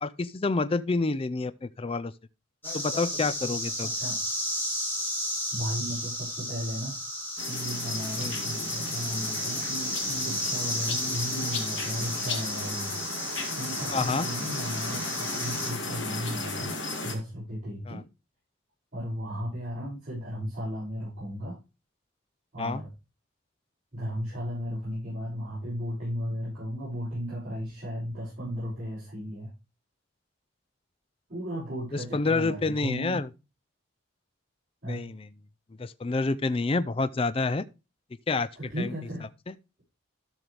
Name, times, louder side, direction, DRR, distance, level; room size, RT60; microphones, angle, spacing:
voice 1, 0.0-2.1 2.7-3.9 8.2-8.4 13.9-14.3 17.9-18.0 22.6-22.8 31.9-33.3 34.9-35.3 35.8-37.6 38.3-38.5 38.8-38.9 39.5-39.6, left 3 dB, 25° left, 0.4 m, -28 dB
sound 1, 2.6-15.7, equal, 10° left, 3.0 m, -33 dB
voice 2, 3.8-4.2 5.5-7.0 7.5-12.9 13.5-16.7 17.0-18.0 18.9-21.6 22.5-22.9 23.9-29.5 31.3-33.2 34.8-35.0 38.6-39.3, equal, 40° right, 6.4 m, -35 dB
sound 2, 7.4-17.1, left 3 dB, 65° left, 2.0 m, -35 dB
12.5 x 6.2 x 3.4 m
head